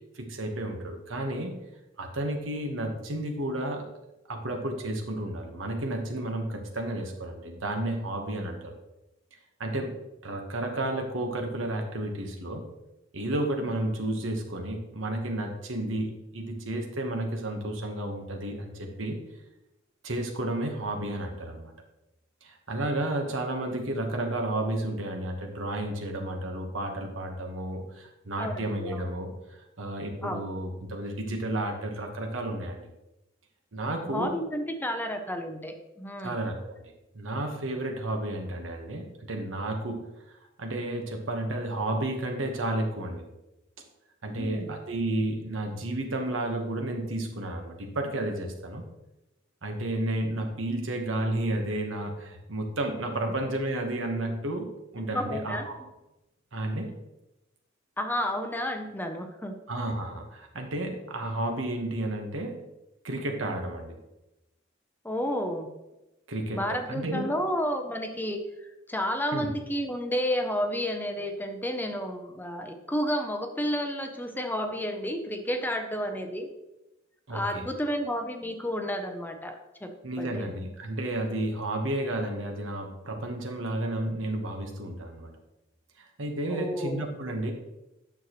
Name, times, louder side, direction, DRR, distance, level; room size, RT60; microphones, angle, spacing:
voice 1, 0.1-1.6 2.0-3.9 4.3-8.7 9.6-9.9 10.2-12.6 13.1-19.2 20.0-21.7 22.4-32.9 33.7-34.3 36.2-43.2 44.2-48.8 49.6-55.8 56.5-57.0 59.7-62.6 63.0-64.0 66.3-67.3 69.3-69.5 77.3-77.7 80.0-85.3 86.0-87.5, right 1 dB, 75° right, 3 dB, 1.2 m, -32 dB
voice 2, 28.4-29.0 30.2-30.4 34.0-36.4 44.3-44.7 53.2-53.3 55.1-55.7 58.0-59.6 65.0-65.7 66.5-68.4 68.9-76.5 77.3-80.5 86.5-87.1, equal, 10° left, 6 dB, 0.6 m, -31 dB
9.3 x 6.3 x 3.1 m, 0.96 s
head